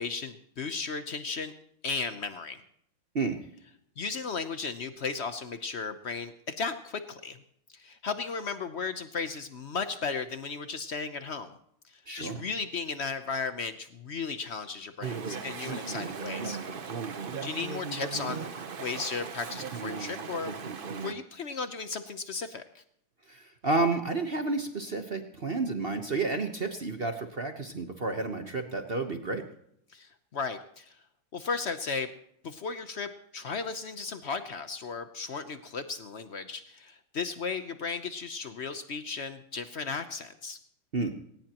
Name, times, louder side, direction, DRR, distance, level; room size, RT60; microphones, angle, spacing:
voice 1, 0.0-1.5 1.8-2.6 4.0-7.4 7.7-11.5 11.9-16.6 17.4-20.6 21.0-22.8 29.9-31.0 31.3-32.1 32.4-40.6, left 5 dB, 70° left, 9 dB, 0.6 m, -35 dB
voice 2, 12.1-12.4 23.3-29.4 40.9-41.1, right 3 dB, 40° right, 6 dB, 0.8 m, -30 dB
Chatter / Stream, 15.0-21.1, right 5 dB, 85° right, 0.4 m, -37 dB
19.0 x 18.0 x 3.0 m, 0.72 s
omnidirectional pair, 2.3 m